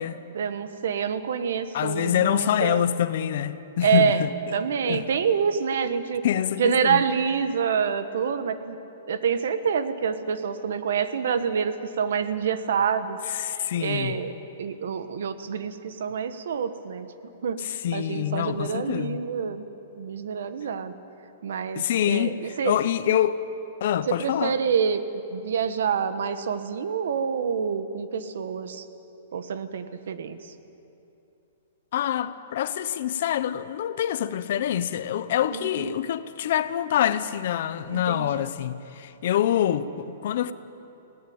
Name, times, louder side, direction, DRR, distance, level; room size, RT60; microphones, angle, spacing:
voice 1, 0.3-2.8 3.8-4.2 4.5-6.2 6.6-8.8 9.1-13.2 13.4-14.3 14.6-17.1 17.4-19.7 20.0-20.9 21.4-22.8 24.1-25.0 25.3-28.8 29.3-30.5 35.5-35.9 37.9-38.4, right 7 dB, 65° right, 1.3 m, -27 dB
voice 2, 1.7-4.3 4.9-5.0 6.2-7.0 13.3-14.2 17.6-19.2 21.8-23.4 23.8-24.6 31.9-40.5, left 10 dB, 45° left, 0.8 m, -26 dB
20.0 x 17.5 x 8.7 m
hypercardioid pair, 175°, 0 cm